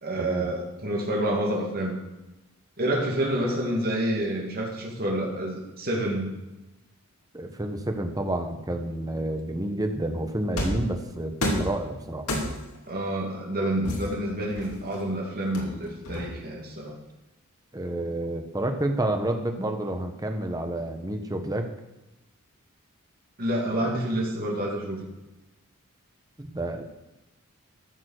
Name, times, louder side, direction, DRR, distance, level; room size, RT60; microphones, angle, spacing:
voice 1, 0.0-2.0 2.8-6.3 12.9-16.9 23.4-25.0, right 1 dB, 45° right, -3 dB, 2.4 m, -28 dB
voice 2, 7.3-12.2 17.7-21.7 26.4-26.8, right 1 dB, 15° right, 5 dB, 1.2 m, -29 dB
sound 1, 10.6-10.9 11.4-11.8 12.3-12.8 13.8-15.0 15.5-16.6, left 1 dB, 80° left, 2.7 m, -30 dB
13.5 x 7.2 x 6.6 m, 1.0 s
head